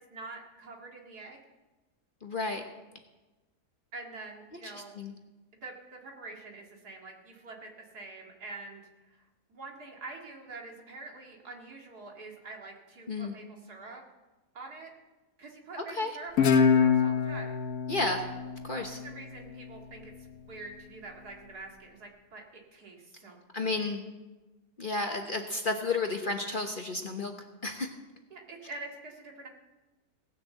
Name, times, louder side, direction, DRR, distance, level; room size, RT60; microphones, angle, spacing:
voice 1, 0.1-1.4 3.9-5.0 5.6-8.8 9.1-9.2 9.5-14.0 14.5-14.9 15.4-17.5 18.7-23.8 28.3-29.5, right 3 dB, 75° right, 0 dB, 2.6 m, -46 dB
voice 2, 2.2-2.6 4.5-5.1 13.1-13.3 15.8-16.1 17.9-18.3 18.6-19.0 23.5-24.0 24.8-27.3 27.6-27.9, left 3 dB, 40° left, 4 dB, 1.0 m, -32 dB
Guitar, 16.4-19.6, left 6 dB, 65° left, 1.3 m, -26 dB
18.0 x 6.6 x 7.7 m, 1.1 s
omnidirectional pair, 1.7 m